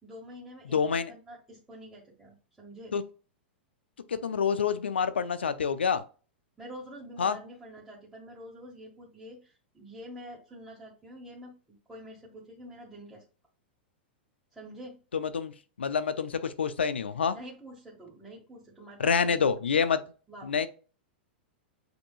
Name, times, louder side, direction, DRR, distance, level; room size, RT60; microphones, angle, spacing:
voice 1, 0.0-3.0 6.6-13.2 14.5-15.0 17.3-19.6 20.3-20.7, equal, 10° right, 1.6 m, -47 dB
voice 2, 0.7-1.1 2.9-3.0 4.1-6.0 7.2-7.4 15.1-17.3 19.0-20.0 20.4-20.7, left 6 dB, 90° left, 0.5 m, -27 dB
7.9 x 2.7 x 2.4 m
hypercardioid pair, 115°, 6 cm